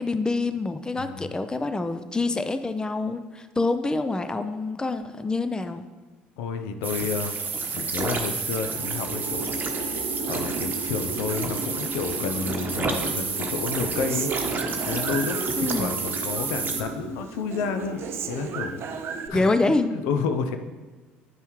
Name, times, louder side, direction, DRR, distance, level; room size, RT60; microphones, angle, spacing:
voice 1, 0.0-5.8 15.6-15.9 19.3-19.9, left 3 dB, 15° left, 10 dB, 0.5 m, -26 dB
voice 2, 1.0-1.3 6.4-9.5 10.2-14.3 14.8-18.0 18.3-18.8 19.3-19.5 19.9-20.6, left 6 dB, 70° left, 7 dB, 0.6 m, -30 dB
sound 1, 6.8-16.8, right 4 dB, 35° right, 1.0 m, -30 dB
sound 2, 8.5-19.6, right 3 dB, 80° right, 0.9 m, -36 dB
Human voice, 11.3-12.5 12.8-16.0 16.3-17.0 17.3-19.3, right 6 dB, 50° right, 0.6 m, -36 dB
9.2 x 5.5 x 3.1 m, 1.4 s
hypercardioid pair, 60°, 5 cm